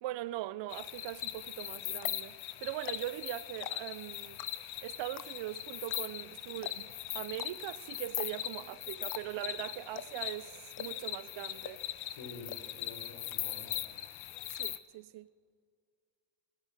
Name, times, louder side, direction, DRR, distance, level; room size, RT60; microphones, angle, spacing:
voice 1, 0.0-4.4 4.8-11.8 14.6-15.3, right 15 dB, 65° right, 0.6 m, -41 dB
sound 1, 0.7-14.8, left 14 dB, 80° left, 0.9 m, -40 dB
sound 2, 1.5-1.6 1.9-2.3 2.7-3.2 3.5-4.0 4.4-4.8 5.2-5.5 5.9-6.0 6.2-6.3 6.6-7.0 7.4-7.5 8.1-8.5 9.0-9.5 9.9-10.3 10.7-11.1 11.6-12.0 12.5-12.6 12.9-13.0 13.3-13.7 14.0-14.6, left 11 dB, 45° left, 0.7 m, -45 dB
voice 2, 12.1-13.7, left 3 dB, 65° left, 4.1 m, -48 dB
16.0 x 13.0 x 6.5 m
cardioid pair, 135°, 47 cm